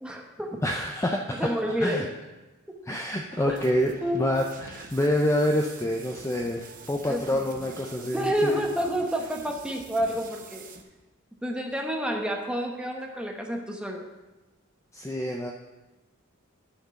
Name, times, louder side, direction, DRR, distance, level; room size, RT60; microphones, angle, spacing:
voice 1, 0.0-0.6 1.4-2.1 2.7-2.8 3.4-3.6 4.0-4.2 7.1-7.5 8.1-10.7 11.4-14.0, equal, 5° right, 1 dB, 0.9 m, -29 dB
voice 2, 0.6-1.5 1.8-2.1 2.8-8.6 14.9-15.5, left 1 dB, 15° left, 1 dB, 0.4 m, -27 dB
sound 1, 3.3-10.8, right 5 dB, 40° right, 0.8 m, -47 dB
11.0 x 4.5 x 5.8 m, 1.1 s
head